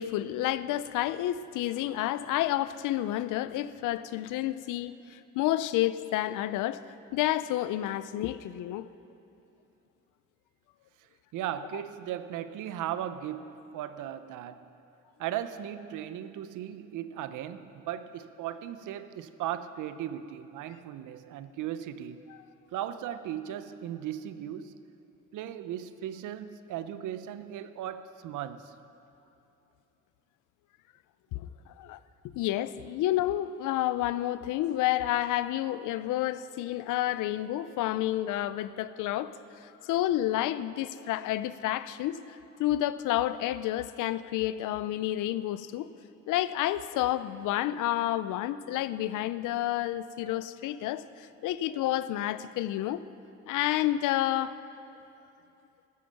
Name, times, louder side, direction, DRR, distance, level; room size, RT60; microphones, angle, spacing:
voice 1, 0.0-6.8 7.1-8.9 31.3-31.5 31.8-32.0 32.3-39.3 39.8-42.2 42.6-45.9 46.3-53.0 53.5-54.6, left 14 dB, 90° left, 0.5 m, -30 dB
voice 2, 11.3-14.7 15.2-22.2 22.7-24.8 25.3-28.7, right 11 dB, 85° right, 0.7 m, -37 dB
14.0 x 10.5 x 6.5 m
cardioid pair, 90°, 30 cm